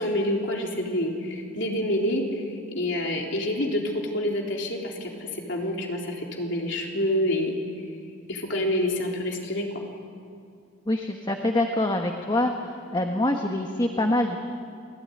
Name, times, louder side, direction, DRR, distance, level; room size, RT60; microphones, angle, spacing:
voice 1, 0.0-7.6 8.3-9.7, left 1 dB, 60° left, 0 dB, 3.9 m, -27 dB
voice 2, 10.9-12.5 12.9-14.4, left 1 dB, 20° left, 3 dB, 1.3 m, -25 dB
28.5 x 20.0 x 9.8 m, 2.3 s
head